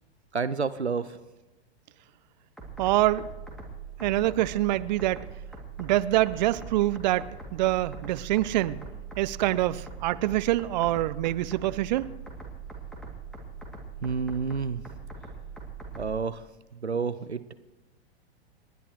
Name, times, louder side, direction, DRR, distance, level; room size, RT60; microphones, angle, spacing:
voice 1, 0.3-1.2 14.0-14.8 15.9-16.4 16.7-17.5, right 5 dB, 90° right, 14 dB, 0.7 m, -29 dB
sound 1, 2.6-16.2, right 5 dB, ahead, 2.6 m, -42 dB
voice 2, 2.8-3.3 4.0-5.2 5.8-8.8 9.2-12.1, right 15 dB, 45° right, 17 dB, 0.5 m, -25 dB
29.0 x 11.0 x 3.2 m, 1.1 s
figure-of-eight pair, 105°, 33 cm